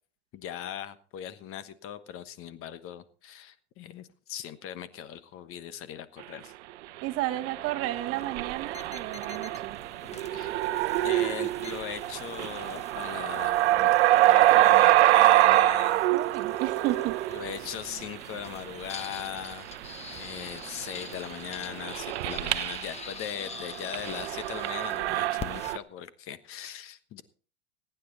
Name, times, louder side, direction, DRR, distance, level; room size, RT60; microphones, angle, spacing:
voice 1, 0.3-6.5 10.3-10.6 11.0-13.9 14.3-16.0 17.3-27.2, left 10 dB, 40° left, 13 dB, 1.2 m, -39 dB
voice 2, 7.0-9.8 16.1-17.3, right 15 dB, 45° right, 11 dB, 1.3 m, -32 dB
sound 1, 7.3-22.9 23.5-25.8, right 15 dB, 80° right, 0.8 m, -25 dB
sound 2, 7.8-25.7, left 6 dB, 20° left, 1.0 m, -47 dB
21.5 x 9.5 x 4.0 m, 0.39 s
supercardioid pair, 120°, 33 cm